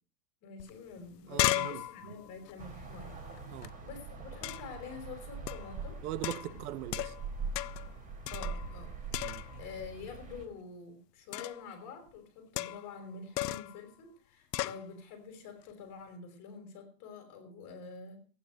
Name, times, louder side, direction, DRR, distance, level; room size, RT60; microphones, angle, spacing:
voice 1, 0.4-3.2 3.8-6.0 8.3-8.9 9.6-18.2, left 5 dB, 40° left, 5.2 m, -47 dB
sound 1, 0.6-0.7 1.0-3.7 4.4-4.8 5.5-5.7 6.2-7.3 7.5-7.9 8.3-8.8 9.1-9.7 11.3-11.7 12.6-13.0 13.4-13.8 14.5-14.8, left 16 dB, 90° left, 0.7 m, -35 dB
voice 2, 1.3-2.1 3.5-3.8 6.0-7.2 9.2-9.5, right 13 dB, 70° right, 1.0 m, -41 dB
sound 2, 2.6-10.4, right 4 dB, 15° right, 3.3 m, -43 dB
15.0 x 9.7 x 6.3 m
supercardioid pair, 150°, 47 cm